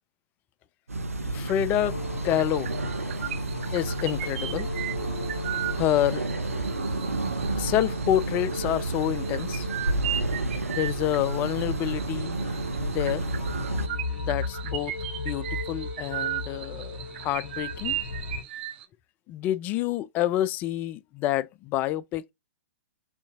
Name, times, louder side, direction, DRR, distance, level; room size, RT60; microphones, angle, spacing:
sound 1, 0.9-13.9, right 2 dB, 80° right, 0.7 m, -31 dB
voice 1, 1.2-2.0 2.2-2.7 3.7-4.7 5.8-6.2 7.6-9.7 10.7-12.4 12.8-13.3 14.2-18.0 19.3-22.3, left 12 dB, 25° left, 0.3 m, -28 dB
sound 2, 1.5-1.8 2.0-18.8, right 12 dB, 45° right, 0.8 m, -37 dB
sound 3, 1.8-18.4, left 3 dB, 55° left, 1.3 m, -38 dB
6.8 x 2.7 x 2.4 m
figure-of-eight pair, 115°, 8 cm